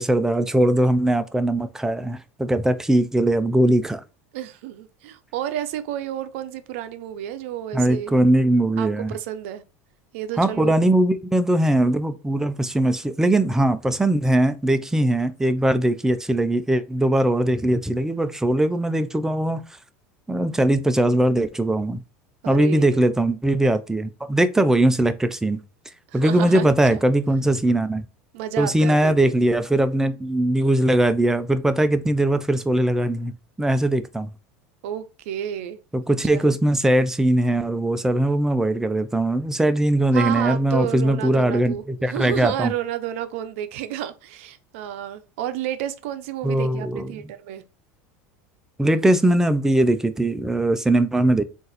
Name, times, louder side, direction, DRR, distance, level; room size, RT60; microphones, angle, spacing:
voice 1, 0.0-4.0 7.7-9.1 10.4-19.6 20.3-22.0 22.5-25.6 26.1-28.0 28.6-34.3 35.9-42.7 46.4-47.1 48.8-51.4, right 1 dB, 5° right, 0.5 m, -20 dB
voice 2, 4.3-8.1 8.8-9.6 10.1-10.7 22.4-23.0 26.1-27.0 28.3-29.3 34.8-35.8 36.1-36.4 40.1-47.6, right 11 dB, 75° right, 0.6 m, -31 dB
3.8 x 2.6 x 4.0 m
supercardioid pair, 100°, 7 cm